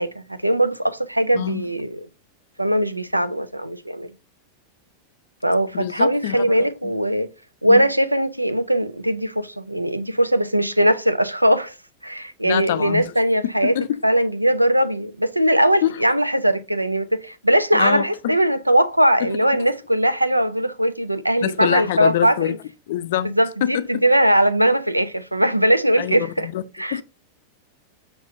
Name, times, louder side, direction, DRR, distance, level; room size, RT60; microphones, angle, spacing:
voice 1, 0.0-2.1 2.6-4.1 5.4-7.3 7.6-11.7 12.0-22.6 23.2-26.5 26.8-27.0, right 1 dB, 85° right, 0.3 m, -20 dB
voice 2, 1.3-1.7 5.7-6.7 7.7-7.8 12.4-13.1 13.4-14.0 15.8-15.9 17.7-18.3 19.2-19.3 21.4-22.5 22.9-23.3 23.6-23.9 26.0-26.6 26.9-27.0, left 12 dB, 55° left, 0.4 m, -25 dB
6.5 x 2.9 x 2.5 m
figure-of-eight pair, 90°, 0 cm